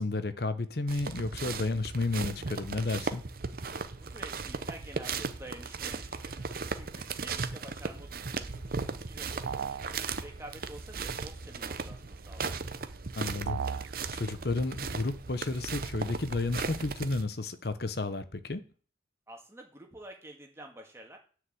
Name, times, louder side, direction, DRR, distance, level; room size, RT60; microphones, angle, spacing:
voice 1, 0.0-3.2 13.2-18.6, left 2 dB, 55° left, 0.9 m, -32 dB
sound 1, 0.9-17.2, right 4 dB, 50° right, 0.7 m, -37 dB
voice 2, 3.9-6.5 6.7-12.5 19.3-21.2, right 1 dB, 15° right, 2.0 m, -49 dB
sound 2, 9.5-9.9 13.5-13.9, right 6 dB, 70° right, 0.3 m, -34 dB
9.7 x 4.9 x 7.8 m
head